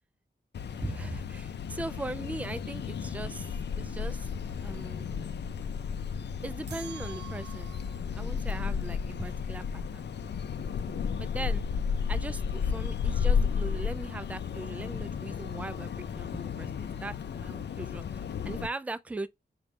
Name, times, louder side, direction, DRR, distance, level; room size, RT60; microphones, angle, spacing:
sound 1, 0.5-18.7, left 6 dB, 90° left, 0.5 m, -33 dB
voice 1, 0.8-3.5 3.8-4.3 4.6-5.1 6.4-7.7 8.1-10.1 11.2-11.7 12.1-19.3, right 2 dB, 10° right, 0.3 m, -39 dB
sound 2, 4.1-13.6, left 1 dB, 10° left, 1.1 m, -56 dB
sound 3, 6.7-8.0, right 10 dB, 80° right, 0.6 m, -47 dB
5.1 x 2.3 x 4.1 m
wide cardioid pair, 120°, 17 cm